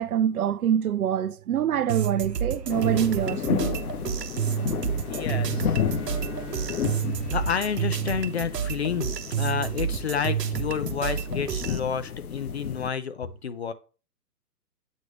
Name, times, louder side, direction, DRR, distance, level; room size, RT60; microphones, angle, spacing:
voice 1, 0.0-3.7, right 9 dB, 65° right, 0.6 m, -25 dB
sound 1, 1.9-11.8, right 8 dB, 80° right, 1.0 m, -30 dB
sound 2, 2.7-12.9, left 8 dB, 65° left, 0.9 m, -32 dB
sound 3, 4.3-8.8, right 2 dB, 10° left, 0.9 m, -45 dB
voice 2, 5.1-5.7 7.3-13.7, left 7 dB, 45° left, 0.5 m, -30 dB
8.2 x 3.1 x 4.9 m
hypercardioid pair, 145°, 49 cm